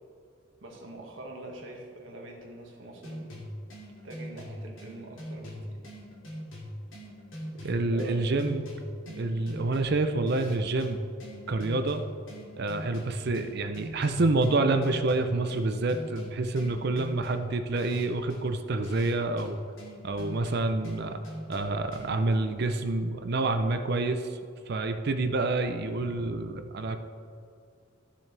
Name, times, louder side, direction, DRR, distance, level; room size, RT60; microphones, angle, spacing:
voice 1, 0.6-3.4 4.0-5.9 7.8-8.3, right 1 dB, 70° right, -1 dB, 1.8 m, -44 dB
sound 1, 3.0-22.3, equal, 70° left, 2.5 m, -42 dB
voice 2, 7.6-8.7 9.1-11.0 11.5-12.0 12.6-19.6 20.0-21.2 21.5-24.4 24.7-27.0, right 2 dB, 50° right, 7 dB, 0.5 m, -28 dB
15.0 x 7.1 x 3.3 m, 2.3 s
head